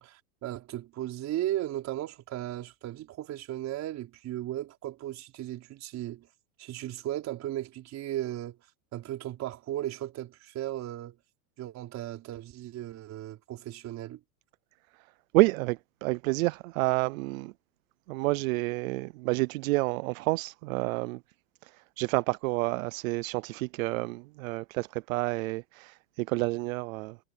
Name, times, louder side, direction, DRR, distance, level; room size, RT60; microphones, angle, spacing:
voice 1, 0.0-6.3 6.6-8.6 8.9-11.1 11.6-14.2, right 13 dB, 35° right, 5.0 m, -36 dB
voice 2, 14.9-17.5 18.1-21.2 21.6-27.2, right 23 dB, 55° right, 0.6 m, -29 dB
supercardioid pair, 145°, 48 cm